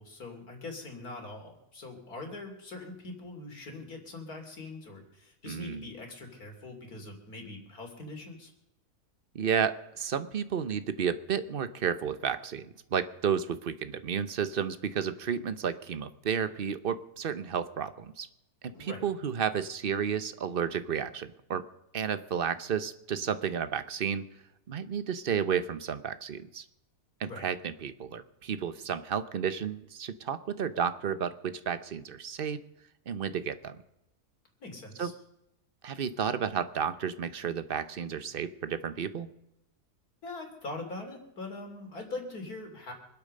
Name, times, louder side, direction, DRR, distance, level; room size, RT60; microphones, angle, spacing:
voice 1, 0.0-8.5 18.7-19.1 27.2-27.5 34.6-35.1 40.2-42.9, left 2 dB, 70° left, 3 dB, 3.5 m, -42 dB
voice 2, 5.5-5.9 9.3-18.3 18.6-21.7 21.9-24.3 24.7-26.6 27.2-32.6 33.1-33.8 35.0-35.1 35.8-39.3, right 7 dB, 45° right, 13 dB, 0.8 m, -32 dB
25.0 x 8.7 x 6.5 m, 0.85 s
omnidirectional pair, 1.6 m